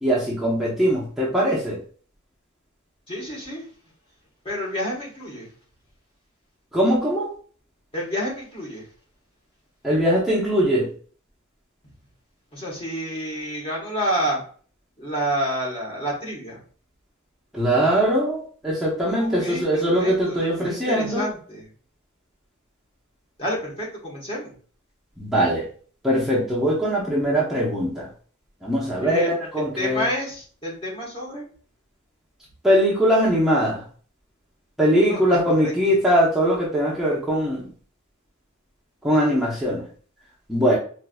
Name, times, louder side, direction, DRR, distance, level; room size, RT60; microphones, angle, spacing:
voice 1, 0.0-1.8 6.7-7.3 9.8-10.9 17.5-21.3 25.2-25.7 26.0-28.1 28.6-30.1 32.6-33.8 34.8-37.7 39.0-39.8 40.5-40.8, equal, ahead, -7 dB, 0.8 m, -21 dB
voice 2, 3.1-3.7 4.4-5.5 7.9-8.9 12.5-14.4 15.0-16.6 19.2-21.7 23.4-24.5 29.0-29.3 29.8-31.5 35.1-35.2 35.6-35.7, equal, 25° left, -3 dB, 1.3 m, -29 dB
4.5 x 2.6 x 2.2 m, 0.43 s
head